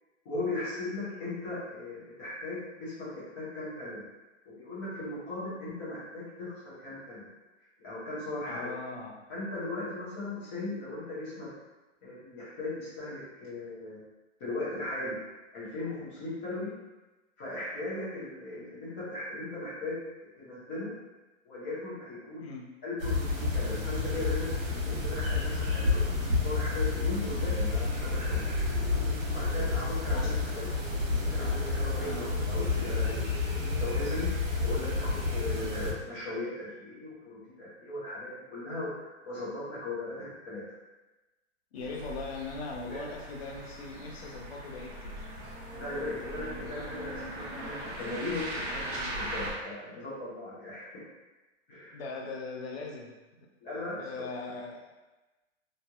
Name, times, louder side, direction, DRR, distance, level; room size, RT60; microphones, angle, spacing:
voice 1, 0.2-4.0 4.5-7.3 7.8-8.7 9.3-11.5 12.0-14.0 14.4-15.2 15.5-16.7 17.4-20.0 20.4-20.9 21.4-22.5 22.8-28.7 29.3-30.7 31.3-34.3 34.6-40.6 42.8-43.0 45.7-51.0 51.7-52.0 53.6-54.0, left 2 dB, 10° left, -10 dB, 0.4 m, -38 dB
voice 2, 8.5-9.2 22.4-22.7 30.1-30.5 32.0-32.2 41.7-45.3 51.9-53.5 54.0-54.8, left 3 dB, 50° left, -1 dB, 0.6 m, -40 dB
sound 1, 23.0-35.9, left 3 dB, 85° right, 1.1 m, -30 dB
sound 2, 41.8-49.5, right 1 dB, 40° right, 0.7 m, -40 dB
3.0 x 2.6 x 2.3 m, 1.1 s
hypercardioid pair, 155°, 39 cm